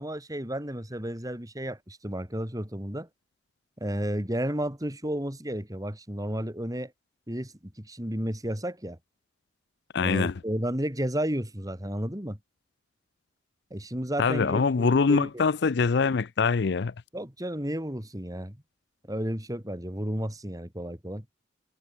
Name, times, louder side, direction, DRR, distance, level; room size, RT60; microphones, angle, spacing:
voice 1, 0.0-3.1 3.8-6.9 7.3-9.0 10.0-12.4 13.7-15.4 17.1-18.6 19.1-21.2, equal, 20° right, 4.0 m, -32 dB
voice 2, 9.9-10.3 14.2-16.9, left 5 dB, 65° left, 0.5 m, -24 dB
head